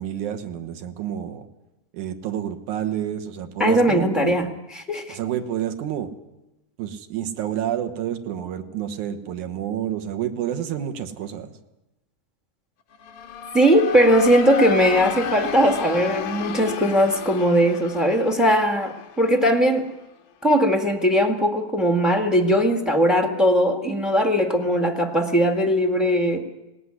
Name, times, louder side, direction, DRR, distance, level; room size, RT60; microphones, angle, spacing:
voice 1, 0.0-1.5 1.9-4.5 5.1-6.1 6.8-11.5, right 10 dB, 75° right, 7 dB, 2.7 m, -29 dB
voice 2, 3.6-5.2 13.5-19.9 20.4-26.4, equal, ahead, 5 dB, 0.6 m, -19 dB
sound 1, 12.9-19.7, left 6 dB, 75° left, 3.0 m, -32 dB
19.5 x 17.5 x 9.8 m, 0.98 s
omnidirectional pair, 3.5 m